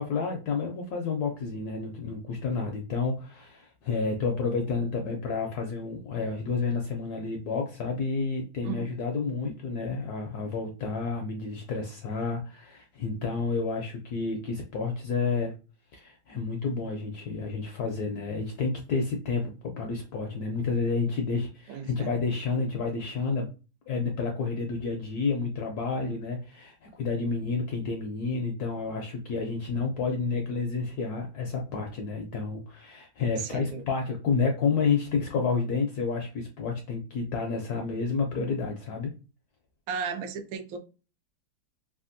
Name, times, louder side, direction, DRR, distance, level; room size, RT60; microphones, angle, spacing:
voice 1, 0.0-15.5 15.9-23.5 23.9-39.1, left 4 dB, 75° left, 0.9 m, -30 dB
voice 2, 21.7-22.1 33.4-33.8 39.9-40.8, right 6 dB, 80° right, 1.3 m, -35 dB
3.4 x 2.4 x 2.5 m
omnidirectional pair, 2.1 m